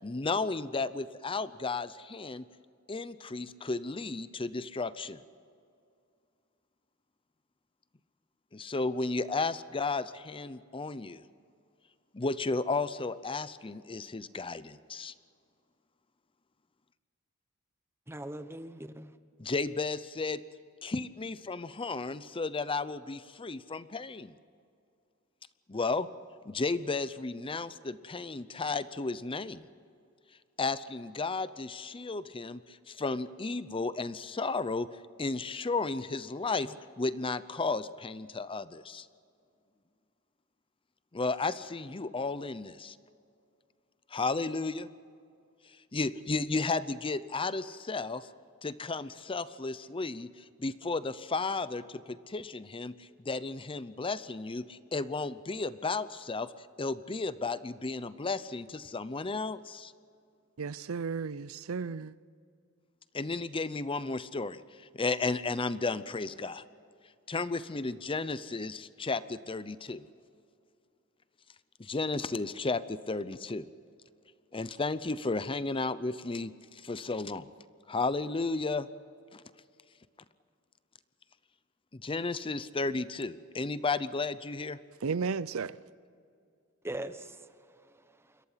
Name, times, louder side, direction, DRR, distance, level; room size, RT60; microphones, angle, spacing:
voice 1, 0.0-2.4 2.9-5.2 8.5-11.2 12.1-15.1 19.4-20.4 20.8-24.3 25.7-26.1 26.5-29.6 30.6-34.9 35.2-39.1 41.1-43.0 44.1-44.9 45.9-48.3 48.6-56.5 56.8-59.9 63.1-66.6 67.3-70.0 71.8-73.7 74.5-77.5 77.9-78.9 79.3-79.4 81.9-84.8, left 3 dB, 25° left, 0.6 m, -33 dB
voice 2, 18.1-19.1 86.8-87.7 87.9-88.4, right 1 dB, 10° right, 1.0 m, -41 dB
voice 3, 60.6-62.2 85.0-85.8, right 5 dB, 70° right, 0.6 m, -34 dB
28.5 x 22.5 x 5.7 m
head